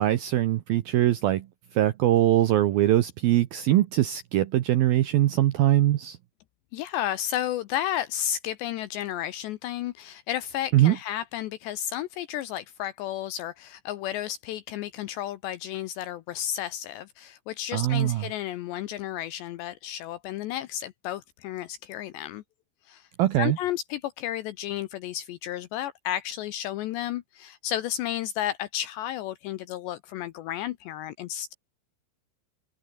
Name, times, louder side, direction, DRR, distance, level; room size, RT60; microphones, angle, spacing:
voice 1, 0.0-1.5 1.7-6.2 10.7-11.0 17.7-18.2 23.2-23.6, right 14 dB, 80° right, 2.1 m, -22 dB
voice 2, 6.7-22.4 22.9-23.1 23.4-31.5, left 12 dB, 80° left, 2.7 m, -32 dB
open air
omnidirectional pair, 5.9 m